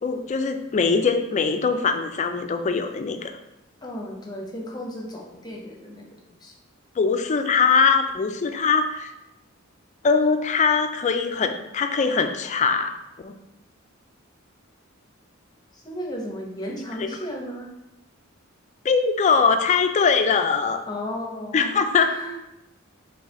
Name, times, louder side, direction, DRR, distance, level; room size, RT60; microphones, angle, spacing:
voice 1, 0.0-3.3 7.0-9.1 10.0-13.3 17.0-17.1 18.8-20.8 21.5-22.1, left 5 dB, 35° left, 7 dB, 0.4 m, -22 dB
voice 2, 3.8-6.1 6.4-6.5 15.7-17.7 20.9-22.4, equal, 20° left, -1 dB, 0.8 m, -34 dB
3.8 x 3.3 x 4.1 m, 0.90 s
head